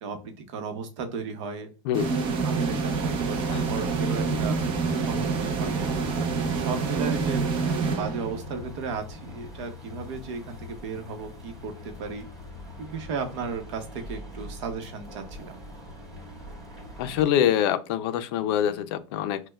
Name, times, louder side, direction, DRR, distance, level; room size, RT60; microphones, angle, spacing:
voice 1, 0.0-1.7 2.0-4.6 5.1-12.3 12.8-15.6, right 5 dB, 65° right, 0.9 m, -35 dB
sound 1, 1.9-8.7, right 4 dB, 30° right, 0.6 m, -27 dB
sound 2, 3.0-17.2, left 1 dB, 5° right, 2.0 m, -41 dB
voice 2, 3.5-3.8 17.0-19.4, left 10 dB, 55° left, 0.4 m, -25 dB
6.2 x 2.2 x 2.3 m
supercardioid pair, 160°, 16 cm